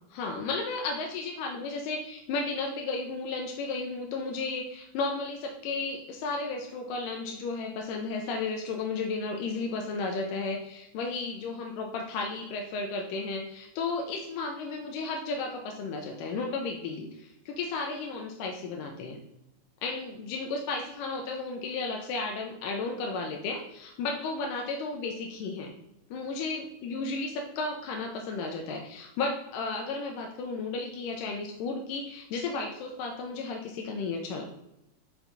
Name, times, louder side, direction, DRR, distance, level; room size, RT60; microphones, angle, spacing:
voice 1, 0.1-19.2 19.8-25.7 26.1-34.5, left 3 dB, 90° left, 2 dB, 2.2 m, -33 dB
5.5 x 4.5 x 3.8 m, 0.86 s
omnidirectional pair, 3.8 m